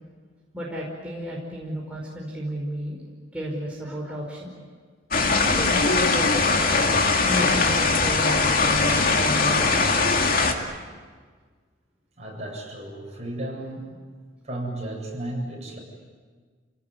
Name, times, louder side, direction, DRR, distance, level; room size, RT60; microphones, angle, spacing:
voice 1, 0.5-3.0 3.3-4.5 5.4-6.6 7.2-10.0, equal, 5° right, -4 dB, 5.1 m, -32 dB
sound 1, 5.1-10.5, left 3 dB, 50° left, 2.4 m, -21 dB
voice 2, 12.2-13.9 14.4-15.8, right 1 dB, 35° right, -1 dB, 7.8 m, -33 dB
30.0 x 18.0 x 9.8 m, 1.5 s
head